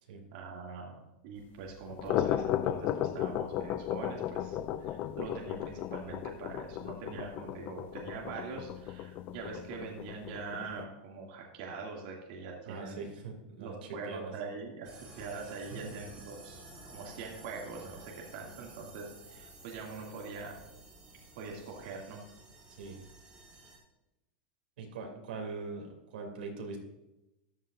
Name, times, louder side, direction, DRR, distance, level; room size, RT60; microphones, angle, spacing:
voice 1, 0.3-1.0 1.2-13.0 13.6-16.6 16.9-20.6 21.4-22.2, right 4 dB, 55° right, -2 dB, 2.5 m, -43 dB
sound 1, 1.8-10.8, left 11 dB, 35° left, 0.5 m, -35 dB
voice 2, 12.7-14.3 15.7-15.9 22.7-23.0 24.8-26.8, right 4 dB, 85° right, 2 dB, 3.0 m, -42 dB
sound 2, 14.8-23.8, right 2 dB, 15° right, 3.5 m, -52 dB
14.0 x 11.0 x 2.6 m, 0.94 s
supercardioid pair, 155°, 5 cm